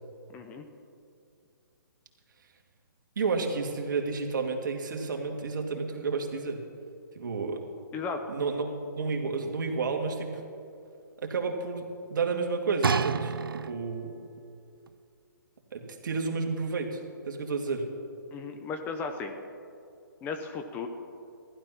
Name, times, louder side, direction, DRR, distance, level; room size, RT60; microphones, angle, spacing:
voice 1, 0.3-0.7 7.9-8.3 18.3-19.4 20.2-20.9, left 5 dB, 15° left, 6 dB, 0.8 m, -35 dB
voice 2, 3.2-6.6 7.1-7.6 8.3-10.3 11.2-14.1 15.7-17.9, right 4 dB, 60° right, 3 dB, 2.2 m, -31 dB
sound 1, 12.8-14.1 14.9-15.0, right 6 dB, 90° right, 0.6 m, -29 dB
15.5 x 11.5 x 5.8 m, 2.5 s
hypercardioid pair, 150°, 11 cm